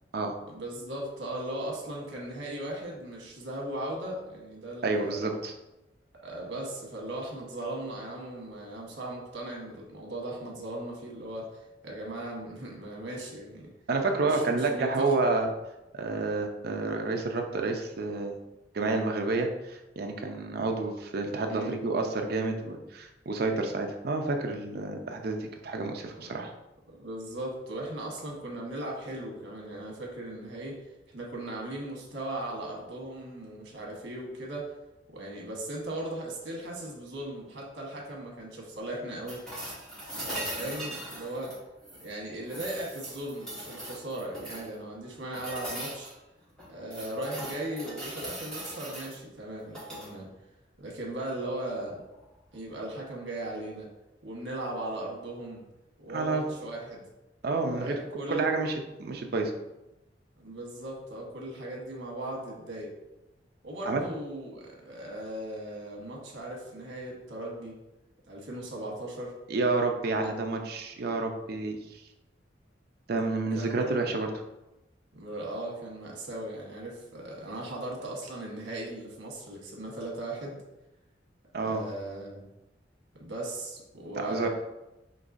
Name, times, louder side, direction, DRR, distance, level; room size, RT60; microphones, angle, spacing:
voice 1, 0.5-5.3 6.2-13.7 14.2-15.1 21.5-21.8 26.1-26.3 26.9-30.8 31.1-34.7 35.1-39.4 40.2-41.5 42.0-46.1 46.7-50.3 50.8-52.0 52.5-53.9 54.2-55.6 56.0-57.0 57.6-58.4 60.4-62.9 63.6-67.8 68.3-69.3 73.5-73.9 75.1-80.6 81.6-82.4 83.2-84.5, right 1 dB, 90° right, -1 dB, 1.1 m, -38 dB
voice 2, 4.8-5.5 13.9-15.5 15.9-18.4 18.7-26.5 56.1-56.5 57.4-58.0 58.3-59.5 63.9-64.0 69.5-71.8 73.1-74.3 81.5-81.8 84.2-84.5, right 3 dB, 55° right, 4 dB, 0.5 m, -29 dB
sound 1, 39.3-42.1 42.5-44.7 45.3-46.1 46.6-49.2 49.7-50.1 52.1-52.2, right 1 dB, 5° left, 1.3 m, -40 dB
5.3 x 3.1 x 2.6 m, 0.96 s
head